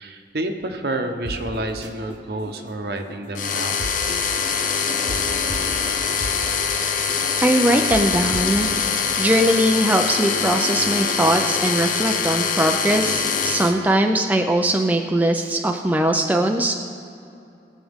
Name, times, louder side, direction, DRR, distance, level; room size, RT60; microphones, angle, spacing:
voice 1, 0.0-3.9, right 1 dB, 60° right, 5 dB, 0.9 m, -29 dB
sound 1, 0.9-14.9, equal, 80° left, 1.9 m, -39 dB
sound 2, 1.3-1.4 1.8-1.9 3.8-4.2 5.1-5.2 5.5-5.6 6.2-6.4 7.9-8.0 8.3-8.7, right 1 dB, 85° right, 0.8 m, -31 dB
sound 3, 3.3-13.7, left 6 dB, 50° left, 0.8 m, -23 dB
voice 2, 7.4-8.7 9.2-16.8, right 1 dB, 10° right, 3 dB, 0.4 m, -20 dB
18.5 x 7.5 x 3.6 m, 2.6 s
head